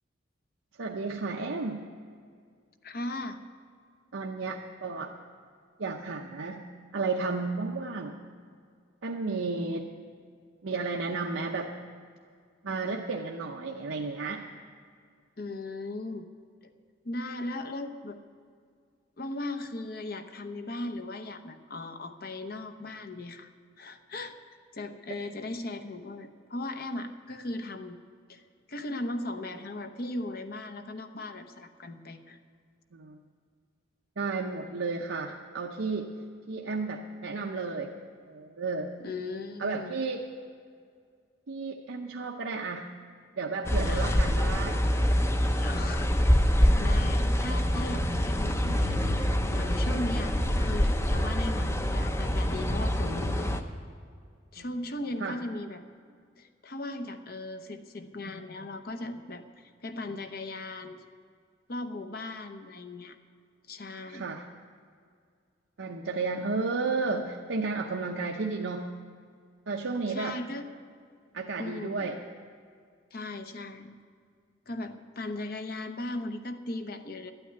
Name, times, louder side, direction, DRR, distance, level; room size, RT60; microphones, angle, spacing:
voice 1, 0.8-1.8 4.1-5.1 5.8-8.2 9.0-9.9 10.6-11.8 12.6-14.4 32.9-33.2 34.2-36.1 36.5-37.9 38.3-38.9 39.6-40.2 41.5-42.9 43.3-44.8 54.6-54.7 55.2-55.4 64.1-64.5 65.8-68.9 69.7-70.4 71.3-72.2, right 3 dB, 85° right, 1 dB, 0.7 m, -33 dB
voice 2, 2.8-3.4 15.4-16.3 17.0-18.2 19.2-23.5 23.8-24.4 24.7-28.0 28.3-28.4 28.7-32.4 39.0-39.9 43.8-44.3 45.6-46.1 46.8-49.2 49.5-53.5 54.5-55.8 56.4-61.0 61.7-63.2 63.7-64.3 70.1-70.7 71.6-72.1 73.1-74.0 74.7-77.3, left 2 dB, 50° left, 8 dB, 0.8 m, -37 dB
sound 1, 43.7-53.6, equal, 15° left, 0.6 m, -25 dB
12.0 x 9.1 x 9.3 m, 2.1 s
head